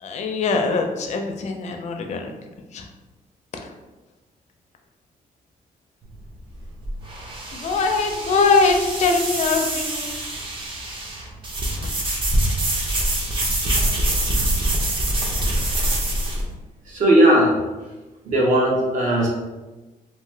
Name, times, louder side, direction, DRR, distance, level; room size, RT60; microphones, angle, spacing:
voice 1, 0.0-2.3 2.7-2.9 7.5-10.2 11.8-11.9, left 4 dB, 50° left, 3 dB, 0.4 m, -22 dB
sound 1, 6.0-16.4, right 1 dB, 35° right, 0.6 m, -24 dB
voice 2, 16.8-17.7 18.2-19.3, right 1 dB, 55° right, -2 dB, 0.8 m, -17 dB
2.8 x 2.1 x 3.2 m, 1.1 s
cardioid pair, 155°, 15 cm